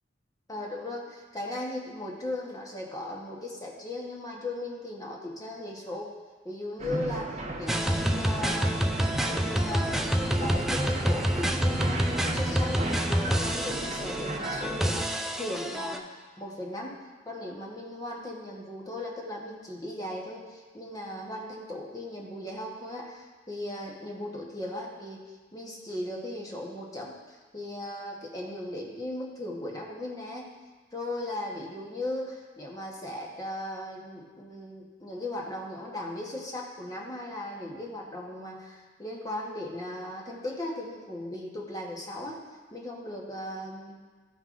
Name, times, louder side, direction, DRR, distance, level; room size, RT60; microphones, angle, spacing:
voice 1, 0.5-6.1 6.4-8.9 9.2-16.9 17.3-25.2 25.5-30.5 30.9-42.4 42.7-44.0, left 1 dB, 20° left, -2 dB, 1.1 m, -37 dB
sound 1, 6.8-15.1, right 1 dB, 35° right, 0.9 m, -35 dB
sound 2, 7.7-16.0, equal, ahead, 0.3 m, -28 dB
13.0 x 5.4 x 2.5 m, 1.4 s
head